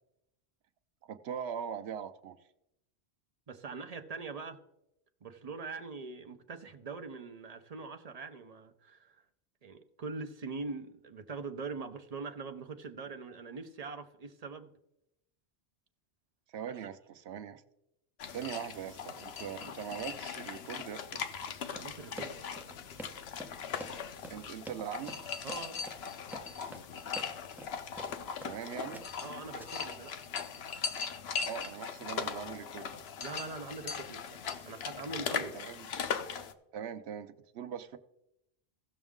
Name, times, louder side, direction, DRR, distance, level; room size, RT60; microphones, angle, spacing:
voice 1, 1.0-2.4 16.5-17.6 18.3-21.2 24.3-25.2 28.4-29.1 31.4-32.9 35.5-36.0 36.7-38.0, right 8 dB, 80° right, 9 dB, 0.9 m, -41 dB
voice 2, 3.5-4.6 5.2-9.2 9.6-14.7 16.7-16.9 21.7-22.3 25.4-25.8 29.2-30.2 33.2-35.6, right 4 dB, 40° right, 7 dB, 0.7 m, -43 dB
sound 1, 18.2-36.5, left 6 dB, 75° left, 0.9 m, -39 dB
Run, 21.7-28.6 28.9-29.3 29.6-30.0, right 1 dB, ahead, 0.7 m, -48 dB
16.5 x 6.2 x 3.6 m, 0.86 s
omnidirectional pair, 1.1 m